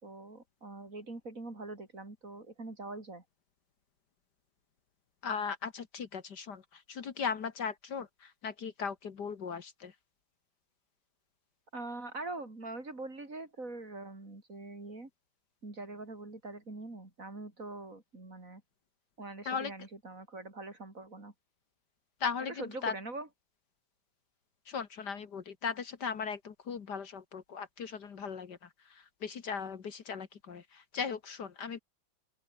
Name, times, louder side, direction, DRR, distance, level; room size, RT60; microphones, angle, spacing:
voice 1, 0.0-3.2 11.7-15.1 15.6-18.6 19.2-21.3 22.6-23.3, right 2 dB, 45° right, 4.7 m, -43 dB
voice 2, 5.2-10.0 19.5-19.7 22.2-22.9 24.7-31.8, left 6 dB, 60° left, 2.1 m, -38 dB
open air
omnidirectional pair, 2.1 m